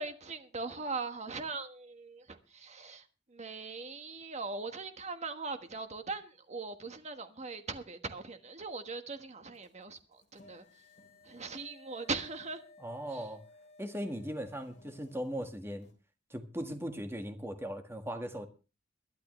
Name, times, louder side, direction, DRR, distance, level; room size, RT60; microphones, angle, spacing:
voice 1, 0.0-3.0 3.3-10.0 10.3-10.6 11.3-12.6 13.1-13.2, right 3 dB, 40° right, 1.4 m, -40 dB
sound 1, 9.5-15.9, left 2 dB, 40° left, 4.0 m, -59 dB
voice 2, 12.8-13.4 13.8-15.9 16.3-18.5, equal, 15° right, 1.7 m, -38 dB
22.0 x 11.5 x 3.2 m
head